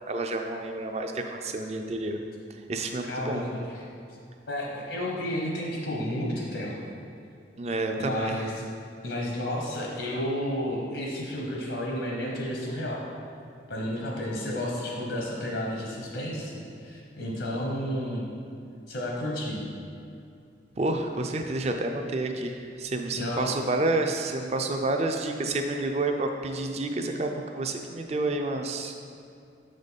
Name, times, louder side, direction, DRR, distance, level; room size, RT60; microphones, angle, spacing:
voice 1, 0.0-2.2 2.7-3.4 7.6-8.4 20.8-29.0, right 2 dB, 35° right, 5 dB, 0.4 m, -29 dB
voice 2, 3.0-3.8 4.5-6.7 8.0-8.5 9.0-13.0 13.7-18.3 18.9-19.6 23.1-23.5, left 1 dB, 80° left, -2 dB, 1.0 m, -31 dB
7.4 x 5.1 x 4.1 m, 2.5 s
head